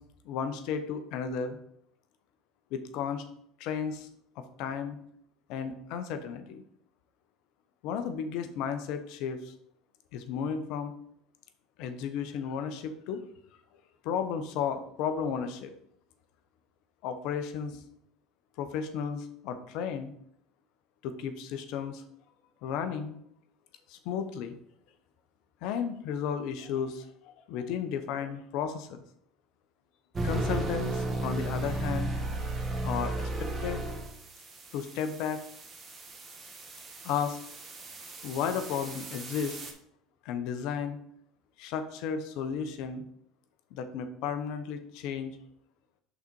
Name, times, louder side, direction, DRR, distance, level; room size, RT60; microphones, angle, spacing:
voice 1, 0.2-1.6 2.7-3.2 3.6-4.1 4.4-5.0 5.5-6.6 7.8-9.5 10.1-10.9 11.8-13.2 14.0-15.7 17.0-17.8 18.6-20.1 21.0-22.0 22.6-23.2 23.9-24.6 25.6-29.0 30.2-32.2 32.8-33.8 34.7-35.4 37.0-37.4 38.2-39.6 40.2-41.0 41.6-43.0 43.7-45.4, left 7 dB, 65° left, 9 dB, 0.8 m, -34 dB
sound 1, 30.2-39.7, right 2 dB, 30° right, 1.2 m, -35 dB
5.9 x 4.1 x 4.6 m, 0.70 s
hypercardioid pair, 85°, 0 cm